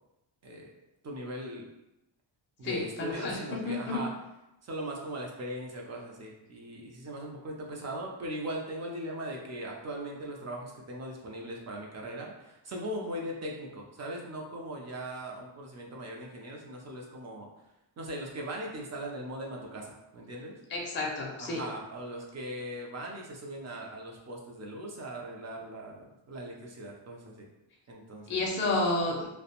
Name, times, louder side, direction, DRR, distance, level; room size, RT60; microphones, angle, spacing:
voice 1, 1.0-1.7 2.6-4.1 4.6-17.5 18.0-20.6 21.4-27.5 27.9-28.5, right 1 dB, 35° right, 0 dB, 0.4 m, -39 dB
voice 2, 2.6-4.0 20.7-21.6 28.3-29.3, left 2 dB, 25° left, -2 dB, 0.4 m, -31 dB
2.4 x 2.1 x 2.8 m, 0.91 s
wide cardioid pair, 155°, 47 cm